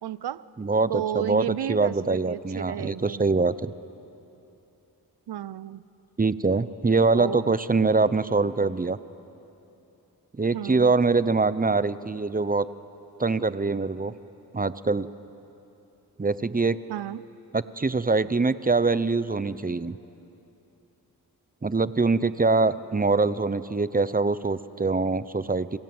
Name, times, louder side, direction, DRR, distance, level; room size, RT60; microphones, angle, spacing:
voice 1, 0.0-0.4 0.9-3.2 5.3-5.8 7.1-7.4 10.5-10.9 16.9-17.2, right 11 dB, 85° right, 18 dB, 0.7 m, -32 dB
voice 2, 0.6-3.7 6.2-9.0 10.4-12.7 13.2-14.1 14.5-15.1 16.2-16.8 17.5-20.0 21.6-25.8, right 3 dB, 20° right, 15 dB, 0.8 m, -24 dB
26.0 x 24.0 x 7.9 m, 2.9 s
cardioid pair, 65°, 38 cm